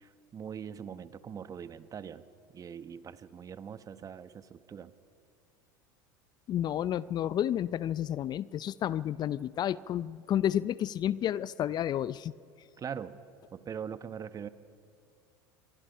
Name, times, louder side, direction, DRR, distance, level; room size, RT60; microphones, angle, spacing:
voice 1, 0.0-2.2 2.5-4.9 12.8-13.2 13.5-14.5, right 7 dB, 30° right, 12 dB, 1.2 m, -42 dB
voice 2, 6.5-12.3, left 11 dB, 40° left, 19 dB, 0.5 m, -31 dB
26.0 x 23.0 x 5.6 m, 2.5 s
hypercardioid pair, 85°, 11 cm